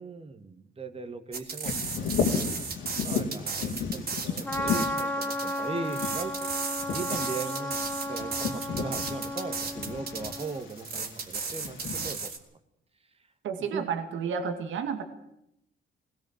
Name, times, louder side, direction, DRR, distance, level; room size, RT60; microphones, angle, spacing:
voice 1, 0.0-2.5 3.0-12.3 13.6-13.9, right 4 dB, 30° right, 8 dB, 2.1 m, -39 dB
sound 1, 1.3-12.4, right 5 dB, 50° right, 3.5 m, -35 dB
Bird vocalization bird call bird song, 1.6-12.2, left 6 dB, 90° left, 3.1 m, -34 dB
Trumpet, 4.4-10.6, left 1 dB, 10° left, 1.3 m, -34 dB
voice 2, 13.4-15.0, right 6 dB, 75° right, 6 dB, 2.3 m, -31 dB
20.5 x 18.5 x 7.5 m, 0.79 s
cardioid pair, 90°, 20 cm